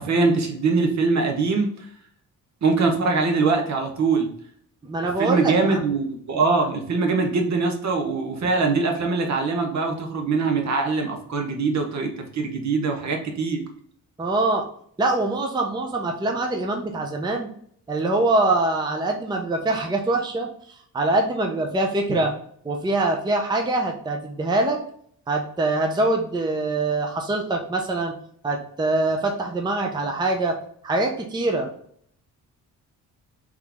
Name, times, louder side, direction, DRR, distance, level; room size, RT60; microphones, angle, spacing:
voice 1, 0.0-1.9 2.6-4.3 5.2-13.6 22.1-22.2, right 4 dB, 55° right, 3 dB, 1.0 m, -23 dB
voice 2, 4.8-5.8 14.2-14.7 15.0-17.5 17.9-20.5 20.9-22.3 22.6-24.8 25.3-28.2 28.4-30.6 30.8-31.7, right 2 dB, 15° right, 2 dB, 0.5 m, -24 dB
3.8 x 3.1 x 3.4 m, 0.62 s
cardioid pair, 95°, 33 cm